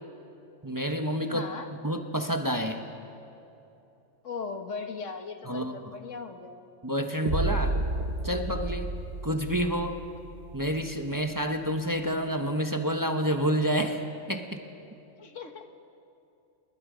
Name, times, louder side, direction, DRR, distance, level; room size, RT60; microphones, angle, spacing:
voice 1, 0.6-1.5 1.8-2.8 5.5-5.9 6.8-7.8 8.2-8.9 9.2-10.0 10.5-14.0 14.3-14.6, equal, 15° right, 5 dB, 1.1 m, -29 dB
voice 2, 1.3-1.7 4.2-6.6 15.2-15.7, left 5 dB, 70° left, 6 dB, 1.7 m, -38 dB
sound 1, 7.3-11.3, right 2 dB, 55° right, 1.8 m, -32 dB
29.5 x 21.5 x 5.1 m, 2.8 s
omnidirectional pair, 1.3 m